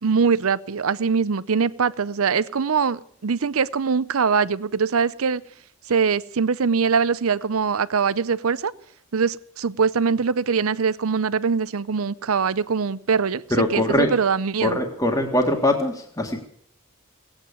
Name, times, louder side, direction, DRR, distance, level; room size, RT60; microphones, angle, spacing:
voice 1, 0.0-5.4 5.9-8.7 9.1-13.4 13.7-14.8, right 5 dB, 75° right, 18 dB, 0.6 m, -22 dB
voice 2, 13.5-14.1 14.6-16.4, left 1 dB, 15° left, 2 dB, 1.9 m, -22 dB
18.0 x 8.9 x 8.4 m, 0.63 s
head